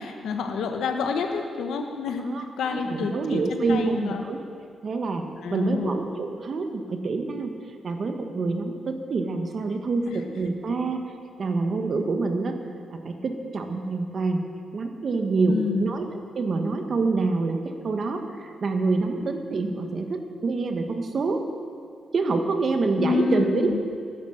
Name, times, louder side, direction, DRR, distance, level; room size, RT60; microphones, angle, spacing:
voice 1, 0.0-2.3 2.6-4.2 5.4-5.9 10.1-10.2 15.5-15.9 23.0-23.8, left 5 dB, 90° left, 5 dB, 1.2 m, -28 dB
voice 2, 2.2-4.4 4.8-7.5 7.8-11.0 11.4-12.6 12.9-14.4 14.7-16.1 16.3-21.4 22.1-23.8, right 3 dB, 45° right, 5 dB, 1.4 m, -26 dB
15.5 x 11.5 x 6.7 m, 2.3 s
cardioid pair, 130°, 0 cm